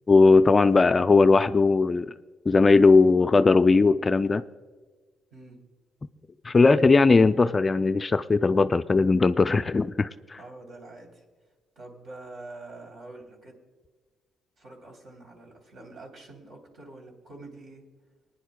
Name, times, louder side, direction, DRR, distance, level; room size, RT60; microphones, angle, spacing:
voice 1, 0.1-2.1 2.5-4.4 6.4-10.1, left 3 dB, 30° left, 11 dB, 0.3 m, -19 dB
voice 2, 10.3-11.2 11.7-13.5 14.6-17.8, right 2 dB, 55° right, 1 dB, 3.2 m, -45 dB
23.5 x 10.0 x 2.2 m, 1.4 s
cardioid pair, 90°, 0 cm